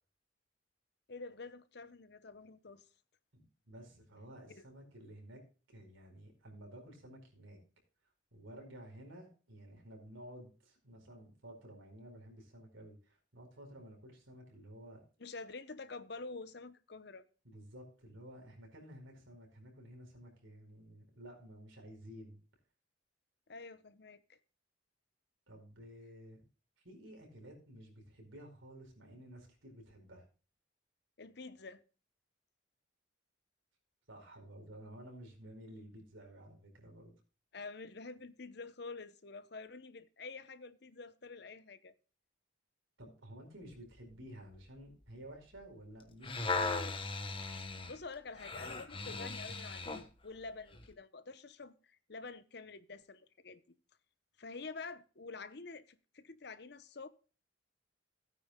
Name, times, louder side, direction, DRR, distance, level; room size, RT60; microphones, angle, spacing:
voice 1, 1.1-2.9 4.5-4.7 15.2-17.2 23.5-24.4 31.2-31.8 37.5-42.0 47.9-53.6 54.4-57.1, left 3 dB, 60° left, 0.9 m, -48 dB
voice 2, 3.3-5.4 5.7-7.6 8.3-15.0 17.4-22.4 25.5-26.4 26.8-30.2 34.1-37.1 43.0-47.0, equal, 90° right, 4.8 m, -53 dB
sound 1, 46.0-50.1 50.7-50.9, left 3 dB, 25° left, 1.2 m, -38 dB
16.5 x 9.4 x 2.3 m
head